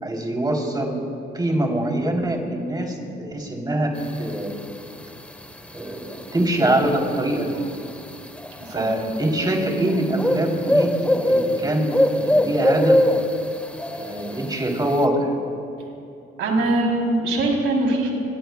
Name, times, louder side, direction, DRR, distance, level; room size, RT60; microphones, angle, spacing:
voice 1, 0.0-1.0 1.3-4.5 5.7-6.1 6.3-7.6 8.7-13.0 13.9-15.3, right 1 dB, 20° right, 0 dB, 3.6 m, -24 dB
sound 1, 4.0-15.0, left 1 dB, 5° left, 1.2 m, -24 dB
voice 2, 16.4-18.1, right 2 dB, 85° right, -1 dB, 3.7 m, -22 dB
26.0 x 22.0 x 2.4 m, 2.6 s
cardioid pair, 90°, 20 cm